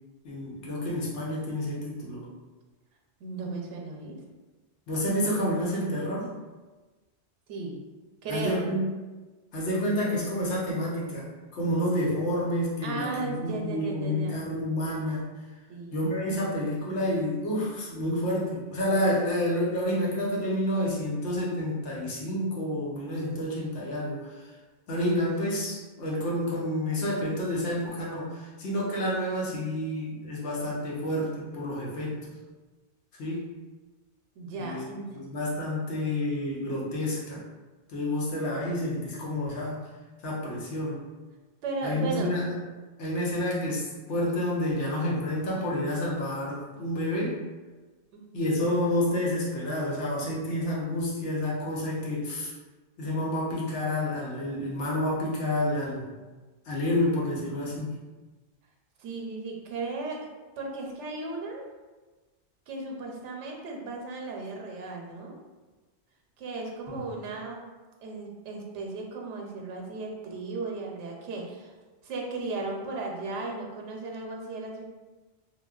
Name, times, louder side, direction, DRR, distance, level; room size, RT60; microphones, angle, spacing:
voice 1, 0.2-2.3 4.9-6.3 8.3-8.8 9.5-15.2 15.9-24.4 24.9-32.2 33.2-33.5 34.6-34.8 35.2-37.4 37.9-39.8 40.2-41.0 41.8-42.6 43.0-47.4 48.3-52.5 53.0-56.1 56.7-57.9 66.9-67.0, left 1 dB, 80° left, -5 dB, 1.0 m, -29 dB
voice 2, 3.2-4.2 7.5-7.8 8.2-8.7 12.8-14.4 15.7-16.0 34.4-35.2 41.6-42.4 48.1-48.6 59.0-60.3 60.6-61.6 62.7-65.4 66.4-67.7 68.0-71.7 72.0-74.8, right 3 dB, 85° right, 1 dB, 0.9 m, -35 dB
3.0 x 2.1 x 2.3 m, 1.2 s
omnidirectional pair, 1.2 m